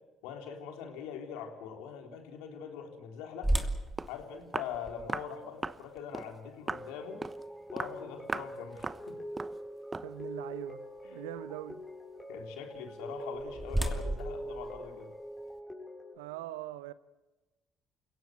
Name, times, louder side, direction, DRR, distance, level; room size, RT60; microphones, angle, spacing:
voice 1, 0.2-3.5 4.1-7.2 7.7-9.2 12.3-15.1, left 7 dB, 75° left, 3.6 m, -43 dB
sound 1, 3.4-9.4 9.9-10.0 10.6-10.9 12.9-15.6, right 1 dB, 10° right, 2.8 m, -37 dB
Walk footsteps, 3.7-3.8 4.0-4.2 4.5-4.8 5.1-5.3 5.6-5.8 6.1-6.3 6.7-6.9 7.2-7.4 7.8-8.0 8.3-8.5 8.8-9.1 9.4-9.6 9.9-10.1, right 3 dB, 25° right, 0.9 m, -37 dB
sound 2, 6.7-16.2, equal, 15° left, 6.0 m, -44 dB
voice 2, 10.0-11.8 16.1-16.9, right 15 dB, 80° right, 0.8 m, -42 dB
28.5 x 17.0 x 7.8 m
hypercardioid pair, 55°, 0 cm